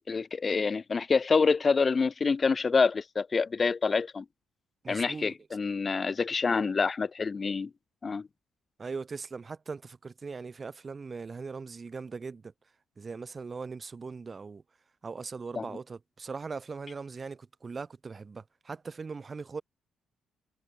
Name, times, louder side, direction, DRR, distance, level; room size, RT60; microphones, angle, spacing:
voice 1, 0.0-4.2 4.9-7.7 8.0-8.3 15.6-15.7, left 4 dB, 35° left, 0.7 m, -27 dB
voice 2, 4.8-5.3 8.8-12.5 13.0-14.6 15.0-19.6, right 4 dB, 35° right, 2.0 m, -40 dB
cardioid pair, 90°, 0 cm